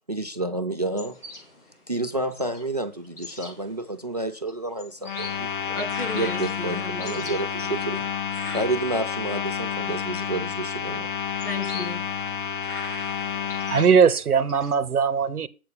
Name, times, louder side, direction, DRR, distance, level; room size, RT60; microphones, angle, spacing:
voice 1, 0.1-1.2 1.9-5.5 6.1-8.0 8.5-11.1, right 2 dB, 30° right, 0.4 m, -29 dB
sound 1, 0.9-14.7, left 2 dB, 90° left, 4.9 m, -44 dB
sound 2, 5.0-13.9, left 7 dB, 35° left, 0.5 m, -30 dB
voice 2, 5.7-7.4 11.4-12.0, left 2 dB, 70° left, 3.1 m, -35 dB
voice 3, 13.7-15.5, right 6 dB, 75° right, 0.9 m, -20 dB
7.8 x 4.7 x 7.1 m
figure-of-eight pair, 140°, 45 cm